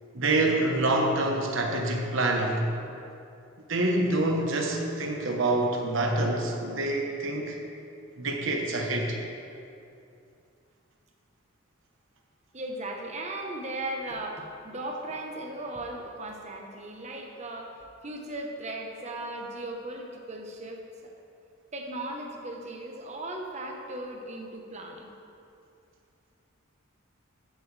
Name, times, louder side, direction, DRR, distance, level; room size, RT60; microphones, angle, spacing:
voice 1, 0.1-2.6 3.7-7.6 8.2-9.2, right 2 dB, 60° right, 1 dB, 1.2 m, -26 dB
voice 2, 12.5-21.1 21.7-25.1, right 1 dB, 30° right, 1 dB, 1.1 m, -37 dB
14.5 x 8.9 x 3.4 m, 2.6 s
head